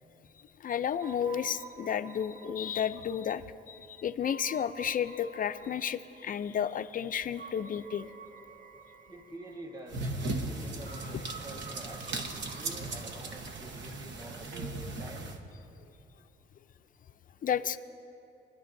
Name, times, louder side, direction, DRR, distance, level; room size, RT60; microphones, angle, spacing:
voice 1, 0.6-8.1 17.4-17.8, left 8 dB, 45° left, 11 dB, 0.4 m, -32 dB
sound 1, 1.0-14.0, right 3 dB, 40° right, 0.7 m, -51 dB
voice 2, 9.1-15.3, right 1 dB, 20° right, 1 dB, 1.5 m, -47 dB
sound 2, 9.9-15.4, right 2 dB, 65° right, 1.1 m, -37 dB
24.0 x 11.5 x 2.7 m, 2.7 s
cardioid pair, 90°, 20 cm